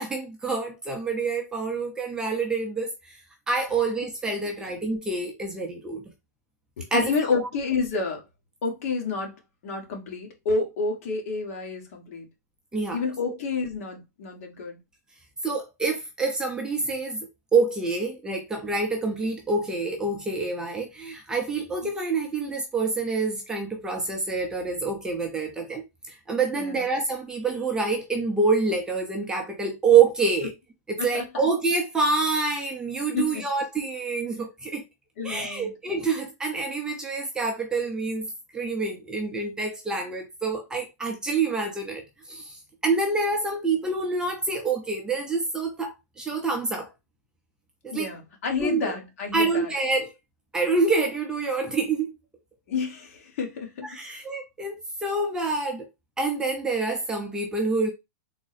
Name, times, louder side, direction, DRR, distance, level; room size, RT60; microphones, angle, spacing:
voice 1, 0.0-2.9 3.5-6.0 6.9-7.1 12.7-13.0 15.4-30.5 30.9-34.8 35.2-42.0 42.3-46.9 47.8-48.1 48.6-48.9 49.3-50.1 50.5-52.2 53.9-55.8 56.2-57.9, right 4 dB, 10° right, 0.6 m, -27 dB
voice 2, 6.8-8.2 8.6-9.3 9.6-12.3 12.9-14.8 26.5-26.8 31.0-31.5 33.1-33.4 35.2-35.7 47.9-49.7 52.7-54.2, left 4 dB, 55° left, 1.4 m, -29 dB
3.7 x 2.0 x 4.0 m
supercardioid pair, 160°, 9 cm